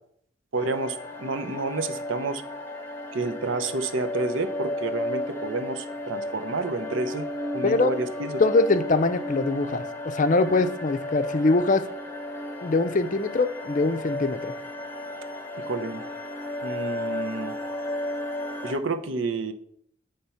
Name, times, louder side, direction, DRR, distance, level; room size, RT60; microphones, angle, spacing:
voice 1, 0.5-2.4 3.1-7.3 7.5-8.4 15.6-16.0 16.6-17.6 18.6-19.5, right 2 dB, 75° right, 9 dB, 0.7 m, -29 dB
sound 1, 0.6-18.8, left 1 dB, 10° left, 0.8 m, -34 dB
voice 2, 8.4-11.8 12.6-14.5, left 3 dB, 40° left, 10 dB, 0.5 m, -23 dB
9.2 x 3.4 x 5.6 m, 0.67 s
head